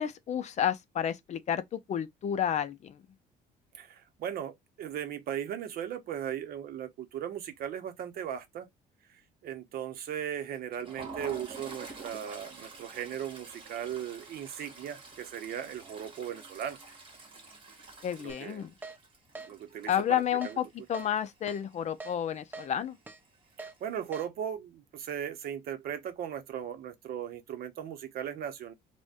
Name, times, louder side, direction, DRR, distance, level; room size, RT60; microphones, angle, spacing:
voice 1, 0.0-3.0 18.0-18.7 19.9-23.0, left 9 dB, 45° left, 0.4 m, -31 dB
voice 2, 3.7-8.7 9.4-16.8 18.2-18.6 19.5-20.6 23.6-28.7, right 9 dB, 65° right, 0.7 m, -37 dB
Toilet flush, 10.5-21.3 21.6-21.8 22.1-22.3 23.2-23.8, right 3 dB, 30° right, 1.2 m, -48 dB
Keyboard (musical), 18.3-18.4 18.8-19.0 19.4-19.5 19.9-20.0 20.4-20.6 20.9-21.1 21.5-21.6 22.0-22.1 22.5-22.7 23.1-23.2 23.6-23.7 24.1-24.3, right 3 dB, 10° right, 0.5 m, -43 dB
2.4 x 2.1 x 3.5 m
cardioid pair, 110°, 17 cm